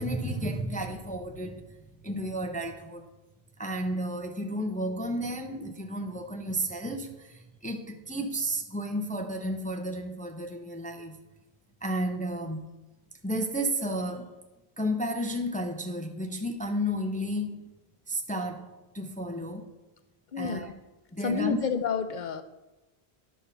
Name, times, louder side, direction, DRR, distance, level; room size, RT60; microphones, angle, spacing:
voice 1, 0.0-1.8 2.0-3.1 3.6-11.2 11.8-12.6 13.2-14.3 14.8-17.7 18.1-19.7 20.4-20.7 21.1-21.6, equal, 10° left, 0.7 m, -32 dB
voice 2, 20.3-20.7 21.2-22.4, left 6 dB, 50° left, 0.8 m, -29 dB
11.5 x 4.3 x 6.9 m
omnidirectional pair, 1.1 m